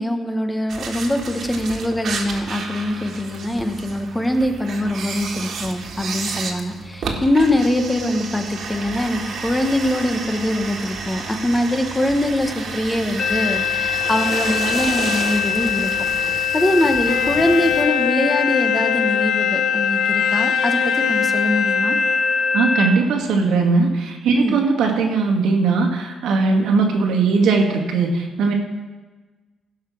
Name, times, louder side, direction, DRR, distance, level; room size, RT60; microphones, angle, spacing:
voice 1, 0.0-15.9 16.2-22.0 24.3-24.6, left 1 dB, 10° left, 6 dB, 1.0 m, -23 dB
sound 1, 0.7-17.8, right 4 dB, 60° right, 1.8 m, -31 dB
sound 2, 13.2-22.9, left 6 dB, 55° left, 0.9 m, -22 dB
Bowed string instrument, 17.1-23.1, left 9 dB, 85° left, 0.8 m, -26 dB
voice 2, 22.5-28.5, right 4 dB, 90° right, 2 dB, 1.9 m, -19 dB
16.5 x 5.8 x 6.1 m, 1.2 s
cardioid pair, 130°, 0 cm